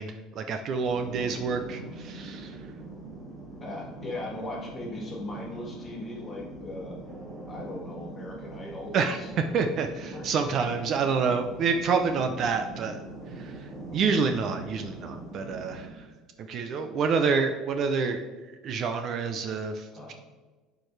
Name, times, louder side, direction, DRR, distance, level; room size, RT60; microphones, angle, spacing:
voice 1, 0.0-2.6 8.9-9.2 9.5-13.0 13.4-16.0 16.4-18.2 18.6-20.1, right 5 dB, 40° right, 7 dB, 0.5 m, -28 dB
sound 1, 0.9-15.9, right 2 dB, 5° right, 2.4 m, -42 dB
voice 2, 3.6-7.0 7.5-9.5 10.1-10.3 19.9-20.1, left 1 dB, 20° left, -2 dB, 1.9 m, -38 dB
11.5 x 4.6 x 3.2 m, 1.3 s
cardioid pair, 165°, 0 cm